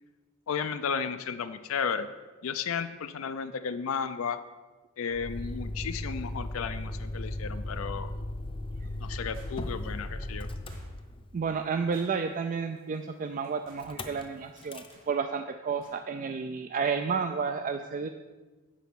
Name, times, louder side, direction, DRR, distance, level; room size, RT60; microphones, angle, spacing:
voice 1, 0.5-2.1 2.4-4.4 5.0-8.1 9.0-10.5, left 6 dB, 75° left, 10 dB, 0.4 m, -33 dB
Motor vehicle (road), 5.1-11.5 13.8-14.2 14.6-14.9, left 1 dB, 25° left, 0.6 m, -37 dB
sound 1, 9.3-9.9 10.7-11.2 11.9-12.4 12.8-13.0 13.4-13.9 14.6-15.1 15.8-16.0 16.3-16.4, right 1 dB, 70° right, 3.2 m, -56 dB
voice 2, 11.3-18.1, right 5 dB, 40° right, 7 dB, 0.4 m, -31 dB
10.0 x 4.2 x 7.1 m, 1.2 s
head